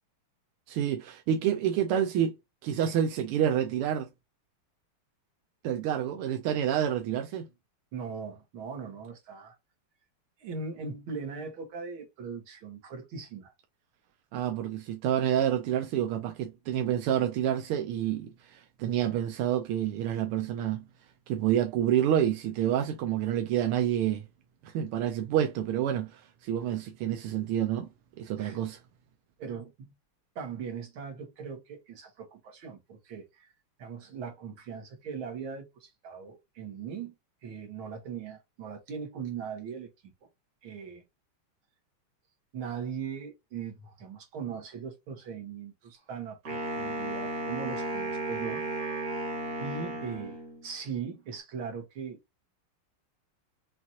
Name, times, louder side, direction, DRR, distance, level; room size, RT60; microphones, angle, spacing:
voice 1, 0.7-2.4 2.6-4.1 5.6-7.5 14.3-20.8 21.3-24.2 24.6-27.9 28.2-28.8, right 10 dB, 85° right, 1.6 m, -28 dB
voice 2, 7.9-9.6 10.4-13.5 28.4-28.6 29.4-29.9 30.4-33.5 33.8-37.1 37.4-39.9 40.6-41.0 42.5-48.9 49.6-52.2, right 6 dB, 70° right, 2.1 m, -39 dB
Wind instrument woodwind instrument, 46.5-50.7, right 2 dB, 45° right, 1.7 m, -34 dB
5.9 x 2.5 x 2.8 m
omnidirectional pair, 2.4 m